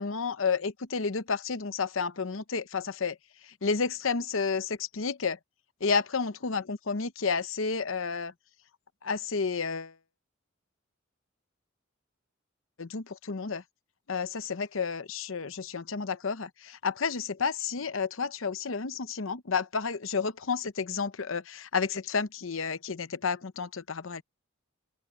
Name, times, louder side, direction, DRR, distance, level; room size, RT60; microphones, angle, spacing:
voice 1, 0.0-3.2 3.4-5.4 5.8-8.3 9.0-9.9 12.8-13.6 14.1-24.2, left 5 dB, 75° left, 0.8 m, -31 dB
open air
head